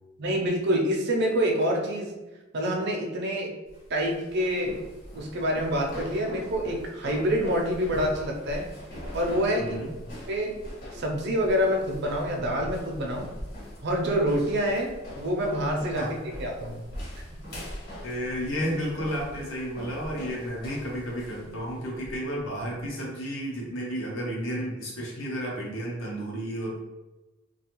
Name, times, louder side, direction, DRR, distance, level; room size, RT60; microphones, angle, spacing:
voice 1, 0.2-2.1 2.5-3.5 3.9-4.8 5.1-8.7 9.1-9.8 10.3-10.6 10.9-13.3 13.8-16.8, equal, 55° right, 0 dB, 0.6 m, -27 dB
sound 1, 3.7-22.9, equal, 50° left, 1.1 m, -41 dB
voice 2, 9.6-9.9 15.9-16.1 18.0-26.8, equal, 70° left, -3 dB, 0.7 m, -32 dB
2.4 x 2.4 x 2.9 m, 1.1 s
head